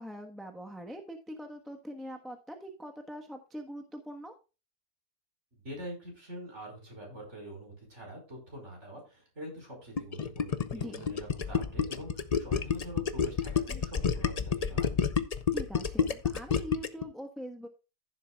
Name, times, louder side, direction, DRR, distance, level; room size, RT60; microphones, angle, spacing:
voice 1, 0.0-4.3 10.7-11.0 15.5-17.7, equal, ahead, 4 dB, 1.1 m, -43 dB
voice 2, 5.6-14.9, right 1 dB, 45° right, 0 dB, 5.6 m, -45 dB
Gurgling, 10.0-17.0, left 6 dB, 45° left, 0.5 m, -29 dB
15.0 x 7.5 x 2.4 m, 0.30 s
omnidirectional pair, 1.7 m